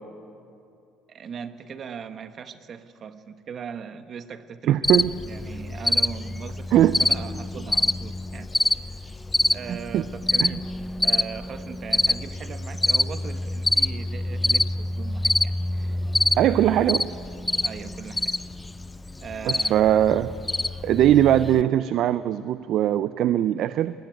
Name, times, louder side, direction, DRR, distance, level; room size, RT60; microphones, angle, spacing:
voice 1, 1.1-4.8 5.3-8.8 9.5-10.7 11.0-16.0 16.4-16.9 17.6-18.4 19.2-20.1, right 7 dB, 45° right, 11 dB, 1.2 m, -39 dB
voice 2, 4.7-5.1 6.7-7.0 9.7-10.0 10.4-10.6 16.4-17.0 19.5-20.3 20.8-23.9, right 11 dB, 60° right, 14 dB, 0.5 m, -20 dB
Cricket, 4.8-21.6, left 2 dB, 15° left, 0.6 m, -26 dB
20.5 x 17.5 x 9.2 m, 2.6 s
cardioid pair, 105°, 0 cm